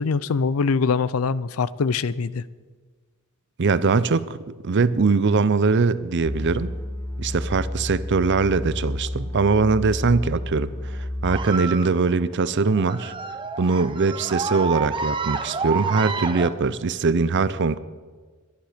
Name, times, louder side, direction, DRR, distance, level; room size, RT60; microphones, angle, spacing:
voice 1, 0.0-2.4, left 5 dB, 85° left, 18 dB, 0.5 m, -23 dB
voice 2, 3.6-4.4 4.6-6.7 7.2-10.7 11.2-13.1 13.6-17.8, right 4 dB, 55° right, 16 dB, 0.6 m, -21 dB
sound 1, 6.2-11.5, left 1 dB, 10° left, 0.5 m, -31 dB
sound 2, 11.3-16.5, right 5 dB, 25° right, 0.8 m, -29 dB
22.5 x 10.5 x 5.1 m, 1.5 s
head